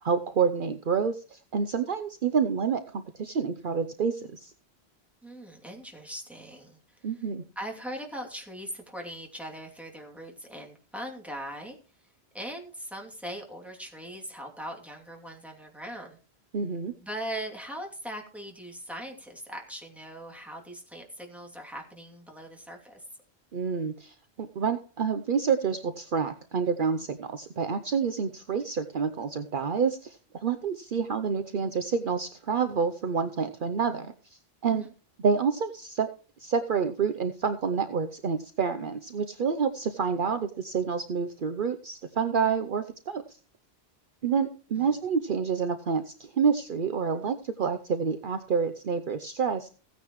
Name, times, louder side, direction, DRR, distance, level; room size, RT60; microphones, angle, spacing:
voice 1, 0.0-4.5 7.0-7.4 16.5-16.9 23.5-34.9 35.2-36.1 36.4-43.4 44.2-49.7, right 6 dB, 55° right, 9 dB, 0.9 m, -28 dB
voice 2, 5.2-6.8 7.6-11.8 12.3-16.2 17.0-23.0 34.8-34.9 44.8-44.9, equal, ahead, 0 dB, 2.7 m, -40 dB
16.0 x 9.4 x 3.1 m, 0.38 s
omnidirectional pair, 1.0 m